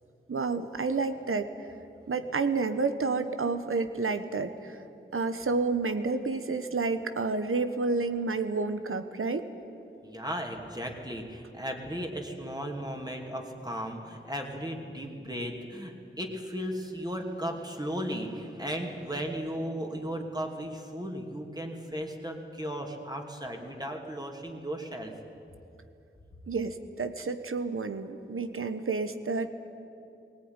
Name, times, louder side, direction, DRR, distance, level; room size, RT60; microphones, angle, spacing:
voice 1, 0.3-1.5 2.1-4.8 5.1-9.5 26.5-29.5, right 4 dB, 85° right, 10 dB, 1.1 m, -30 dB
voice 2, 10.0-25.1, equal, 20° right, 2 dB, 2.9 m, -36 dB
19.0 x 18.0 x 9.7 m, 2.7 s
wide cardioid pair, 40°, 21 cm